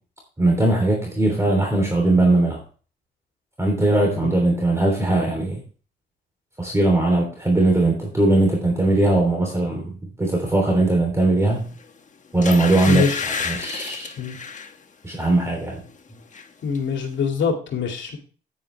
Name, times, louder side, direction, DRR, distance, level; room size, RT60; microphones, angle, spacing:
voice 1, 0.4-2.6 3.6-5.6 6.6-11.7 12.3-14.1 15.0-15.8, right 2 dB, 15° right, 1 dB, 3.2 m, -20 dB
sound 1, 11.7-11.9 12.4-14.7 15.2-15.4 15.7-16.5 16.7-16.8, left 5 dB, 40° left, 1.3 m, -30 dB
voice 2, 12.8-13.2 14.2-14.4 16.6-18.2, left 6 dB, 65° left, 3 dB, 2.4 m, -24 dB
9.8 x 9.4 x 3.3 m, 0.38 s
cardioid pair, 90°, 20 cm